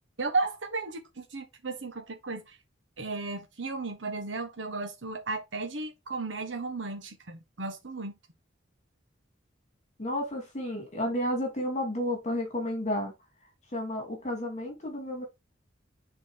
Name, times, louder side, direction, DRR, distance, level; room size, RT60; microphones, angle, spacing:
voice 1, 0.2-2.6 3.0-8.1, right 3 dB, 75° right, 1.2 m, -34 dB
voice 2, 10.0-13.1 13.7-15.2, left 1 dB, 40° left, 2.6 m, -31 dB
7.7 x 4.1 x 3.5 m
head